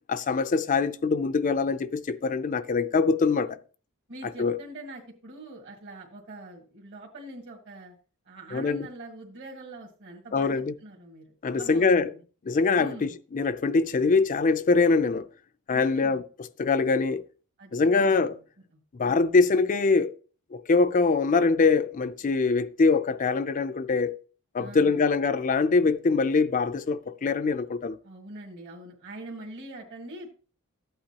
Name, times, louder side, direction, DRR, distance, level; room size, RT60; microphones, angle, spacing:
voice 1, 0.1-3.6 4.4-4.6 8.5-8.9 10.3-10.7 11.4-12.1 12.5-15.3 15.7-16.2 16.6-17.2 17.7-18.4 18.9-20.1 20.5-24.2 24.5-28.0, left 4 dB, 35° left, 0.4 m, -23 dB
voice 2, 4.1-7.9 8.2-12.2 12.8-13.2 15.7-16.2 17.6-18.3 19.0-19.3 24.6-25.1 28.0-30.3, right 1 dB, 55° right, 1.8 m, -43 dB
14.0 x 8.7 x 2.9 m
head